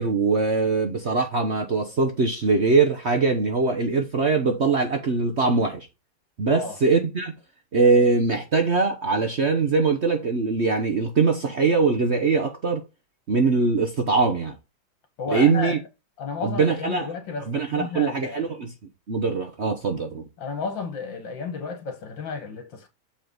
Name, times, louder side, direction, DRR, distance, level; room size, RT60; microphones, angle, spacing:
voice 1, 0.0-5.9 6.4-7.3 7.7-12.8 13.3-14.5 15.3-15.8 16.4-17.1 17.4-18.7 19.1-20.2, right 4 dB, 45° right, 1.0 m, -22 dB
voice 2, 6.5-6.8 15.2-15.8 16.2-18.5 20.4-22.9, left 5 dB, 70° left, 2.4 m, -32 dB
7.0 x 5.1 x 3.8 m
omnidirectional pair, 2.1 m